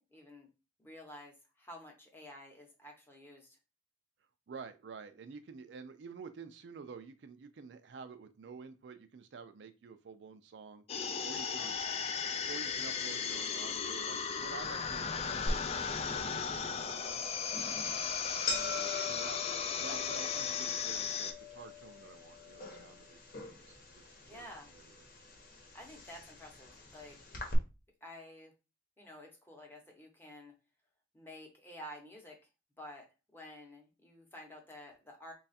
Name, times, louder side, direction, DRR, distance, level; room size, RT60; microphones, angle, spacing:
voice 1, 0.1-0.5 0.8-3.6 11.5-12.0 18.8-19.3 24.3-24.7 25.7-27.2 28.0-28.5 29.0-30.5 31.1-32.4 32.8-33.1 33.3-35.3, left 1 dB, 10° left, 1 dB, 0.8 m, -51 dB
voice 2, 4.5-10.8 11.2-11.8 12.5-17.4 18.4-19.4 19.8-23.7 24.2-24.5 24.7-24.9, right 5 dB, 70° right, 9 dB, 0.4 m, -50 dB
sound 1, 10.9-21.3, left 6 dB, 35° left, 0.3 m, -36 dB
sound 2, 15.5-27.5, left 3 dB, 55° left, 0.9 m, -44 dB
3.2 x 2.3 x 4.1 m, 0.29 s
head